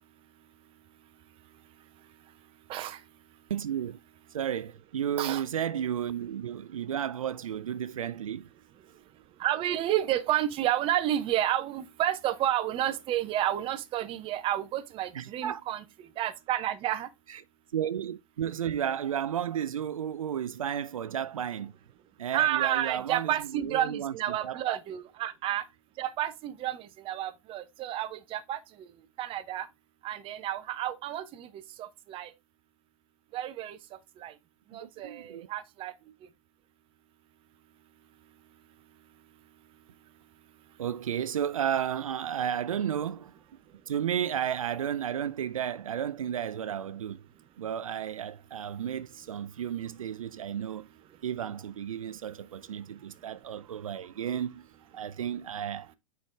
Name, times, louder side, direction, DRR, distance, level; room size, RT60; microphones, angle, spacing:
voice 1, 3.5-4.0 4.3-8.5 15.1-15.6 17.3-17.4 17.7-21.7 22.2-24.8 34.7-35.5 40.8-43.4 43.9-47.3 47.6-50.9 51.2-54.7 54.9-55.9, right 9 dB, 80° right, 0.4 m, -33 dB
voice 2, 9.4-15.8 16.2-17.1 22.3-25.6 26.0-28.6 29.2-29.7 30.0-31.5 31.8-32.3 33.3-33.8 34.2-34.3 34.7-35.9, right 12 dB, 30° right, 0.7 m, -30 dB
7.4 x 4.6 x 3.4 m
hypercardioid pair, 100°, 17 cm